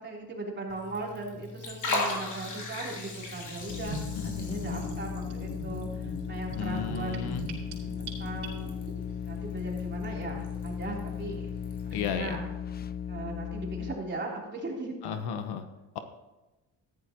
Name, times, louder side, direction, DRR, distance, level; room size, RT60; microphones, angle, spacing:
voice 1, 0.0-7.3 8.0-8.8 9.2-11.4 11.8-12.5 13.1-15.2, right 3 dB, 30° right, -2 dB, 3.5 m, -38 dB
Liquid, 0.7-12.1, left 2 dB, 50° left, 3.4 m, -39 dB
sound 1, 3.7-14.0, left 8 dB, 25° left, 0.3 m, -37 dB
Gurgling / Bathtub (filling or washing), 3.9-8.9, right 3 dB, 85° right, 3.6 m, -41 dB
voice 2, 4.2-4.8 6.6-7.4 11.9-12.4 15.0-15.7, left 7 dB, 80° left, 8 dB, 1.1 m, -34 dB
14.5 x 10.5 x 3.0 m, 1.0 s
cardioid pair, 115°, 39 cm